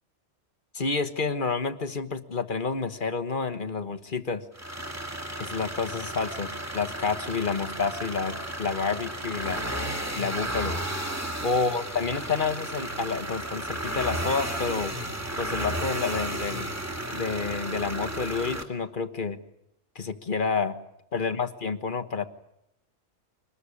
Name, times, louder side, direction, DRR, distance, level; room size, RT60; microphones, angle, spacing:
voice 1, 0.7-4.4 5.4-9.6 10.1-10.8 11.4-14.9 15.4-16.7 17.1-19.4 19.9-20.8 21.1-22.3, left 4 dB, 40° left, 9 dB, 1.4 m, -29 dB
sound 1, 4.5-18.6, right 1 dB, 10° right, 2.5 m, -33 dB
24.5 x 20.0 x 9.9 m, 0.83 s
omnidirectional pair, 1.4 m